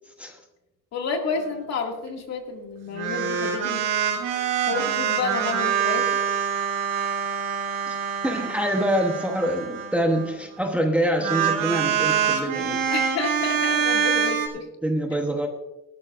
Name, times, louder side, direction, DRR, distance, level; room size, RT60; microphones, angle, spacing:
voice 1, 0.1-0.4 7.9-8.0 8.2-12.8 14.8-15.5, equal, 5° right, 2 dB, 1.0 m, -25 dB
voice 2, 0.9-3.9 4.7-6.2 12.9-14.7, left 5 dB, 50° left, 2 dB, 2.2 m, -30 dB
sound 1, 2.9-10.3 11.1-14.5, right 7 dB, 70° right, 3.2 m, -25 dB
19.5 x 12.5 x 2.5 m, 1.0 s
cardioid pair, 165°, 34 cm